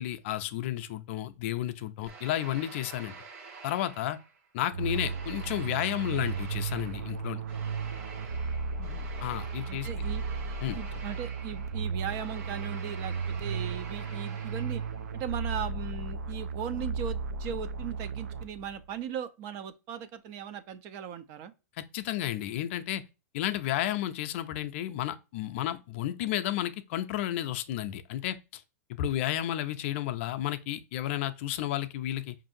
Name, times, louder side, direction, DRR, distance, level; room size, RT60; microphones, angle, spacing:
voice 1, 0.0-3.1 3.6-4.2 4.5-7.4 9.2-9.9 10.6-10.8 21.8-23.0 23.3-28.6 28.9-32.4, left 13 dB, 50° left, 0.4 m, -32 dB
sound 1, 2.1-4.5 4.9-15.2, right 5 dB, 55° right, 1.0 m, -48 dB
Short bass, 4.7-18.8, right 5 dB, 80° right, 0.5 m, -35 dB
voice 2, 8.8-9.1 9.7-10.2 10.7-14.8 15.1-21.5, right 8 dB, 35° right, 0.5 m, -38 dB
5.4 x 2.6 x 2.6 m
hypercardioid pair, 140°, 9 cm